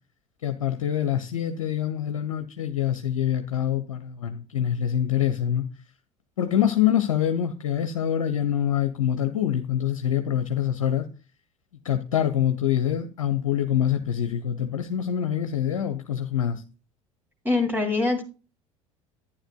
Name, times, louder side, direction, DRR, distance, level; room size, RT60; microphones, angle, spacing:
voice 1, 0.4-5.7 6.4-11.1 11.8-16.6, left 10 dB, 80° left, 0.7 m, -25 dB
voice 2, 17.4-18.2, left 3 dB, 10° right, 2.6 m, -23 dB
11.5 x 9.8 x 2.2 m
hypercardioid pair, 70°, 17 cm